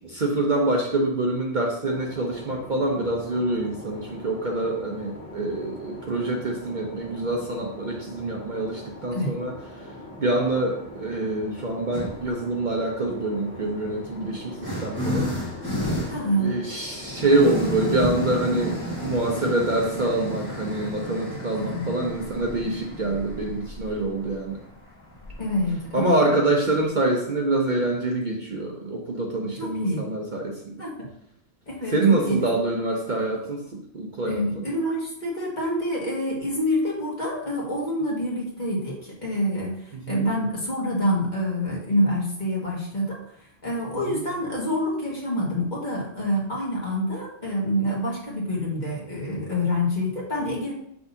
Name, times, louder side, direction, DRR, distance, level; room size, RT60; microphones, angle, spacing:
voice 1, 0.0-9.9 10.2-15.3 16.4-18.8 19.0-24.6 25.9-30.7 31.9-34.6 39.9-40.3 44.1-44.2, right 2 dB, 45° right, 0 dB, 0.8 m, -25 dB
sound 1, 1.8-20.9, left 1 dB, 85° left, 1.6 m, -42 dB
sound 2, 11.9-12.4 13.4-26.9, equal, 15° left, 1.7 m, -33 dB
voice 2, 16.1-16.5 21.5-21.8 25.4-26.3 29.4-30.1 30.8-30.9 31.7-32.4 34.2-43.2 43.6-50.7, equal, 40° left, -5 dB, 1.8 m, -27 dB
6.1 x 6.1 x 2.7 m, 0.74 s
omnidirectional pair, 1.2 m